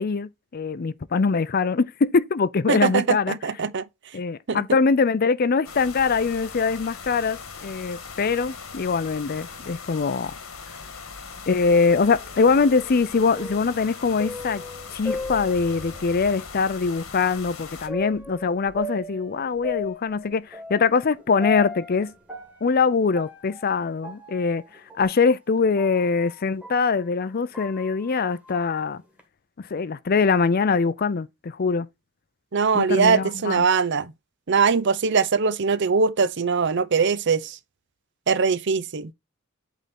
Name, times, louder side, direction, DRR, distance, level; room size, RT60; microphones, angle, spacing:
voice 1, 0.0-3.4 4.1-10.3 11.5-14.6 14.9-22.1 22.6-24.6 25.0-29.0 29.6-31.9 32.7-33.6, left 4 dB, 45° left, 0.5 m, -23 dB
voice 2, 2.7-3.8 4.5-4.6 32.5-34.1 34.5-37.6 38.3-39.1, right 5 dB, 55° right, 0.6 m, -21 dB
sound 1, 5.6-17.9, left 5 dB, 85° left, 1.6 m, -40 dB
sound 2, 12.3-16.3 16.8-16.9 17.9-26.9 27.3-29.2, left 2 dB, 5° right, 1.7 m, -38 dB
sound 3, 14.4-20.3 21.9-22.4 25.0-25.1, equal, 85° right, 2.2 m, -48 dB
8.2 x 3.6 x 4.3 m
head